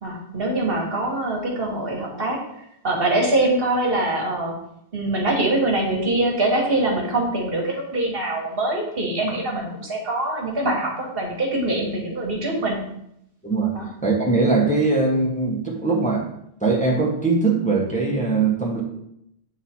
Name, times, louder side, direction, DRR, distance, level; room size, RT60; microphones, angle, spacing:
voice 1, 0.0-2.4 2.8-4.5 4.9-12.8 13.7-13.9, right 2 dB, 60° right, 0 dB, 1.5 m, -23 dB
voice 2, 14.0-16.2 16.6-18.8, right 3 dB, 5° left, -4 dB, 1.1 m, -21 dB
8.9 x 3.0 x 4.2 m, 0.77 s
omnidirectional pair, 1.1 m